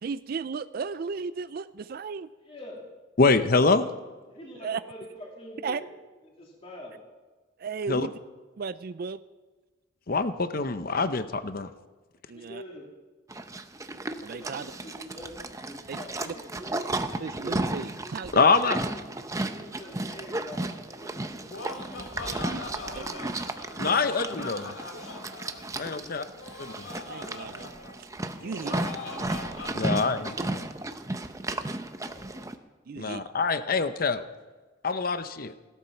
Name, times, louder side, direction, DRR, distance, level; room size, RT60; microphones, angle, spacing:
voice 1, 0.0-2.3 4.6-4.8 5.6-5.8 7.6-8.1 8.6-9.2 12.3-12.6 14.2-14.7 15.9-16.0 16.3-16.4 17.2-18.4 22.5-22.6 23.0-23.1 23.8-24.0 27.1-27.7 28.4-28.8 32.9-33.3, right 5 dB, 50° right, 14 dB, 0.4 m, -35 dB
voice 2, 2.4-2.8 3.7-3.9 4.3-5.9 6.2-7.0 12.5-12.8 14.3-16.9 18.7-19.0 19.3-23.3 25.9-26.3 31.2-32.4, equal, 30° left, -2 dB, 2.6 m, -46 dB
voice 3, 3.2-3.8 7.9-8.1 10.1-11.7 18.3-18.8 23.8-24.7 25.8-26.2 26.6-26.9 29.7-30.7 33.0-34.2 34.8-35.5, left 4 dB, 50° left, 11 dB, 0.7 m, -25 dB
Livestock farm animals working animals, 13.3-32.6, right 2 dB, 15° right, 0.7 m, -34 dB
Laughter, 21.2-30.4, left 2 dB, 80° left, 2.0 m, -41 dB
17.0 x 12.5 x 5.8 m, 1.3 s
head